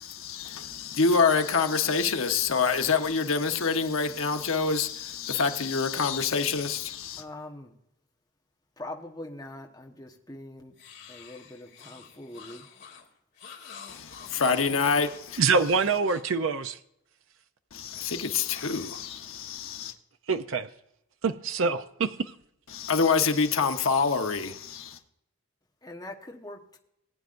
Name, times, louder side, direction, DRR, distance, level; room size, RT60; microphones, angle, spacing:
voice 1, 0.2-7.2 13.9-15.4 17.7-19.9 22.7-25.0, left 5 dB, 80° left, 1.0 m, -26 dB
voice 2, 7.2-7.8 8.8-10.7 11.1-12.7 25.8-26.8, left 1 dB, 20° left, 1.1 m, -42 dB
sound 1, 10.7-16.4 18.4-19.6, left 6 dB, 55° left, 2.1 m, -49 dB
voice 3, 15.4-16.8 20.3-20.7 21.2-22.3, right 4 dB, 70° right, 0.5 m, -25 dB
19.5 x 9.4 x 2.6 m
head